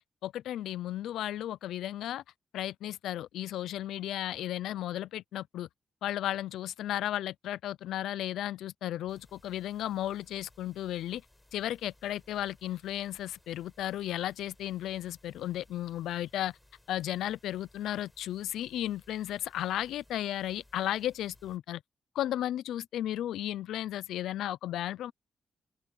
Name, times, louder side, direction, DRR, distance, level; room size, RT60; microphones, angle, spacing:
voice 1, 0.2-2.2 2.5-5.7 6.0-11.2 11.5-16.5 16.9-21.8 22.1-25.1, left 12 dB, 85° left, 0.6 m, -34 dB
sound 1, 9.0-21.6, left 1 dB, 15° left, 7.5 m, -63 dB
open air
supercardioid pair, 45°, 0 cm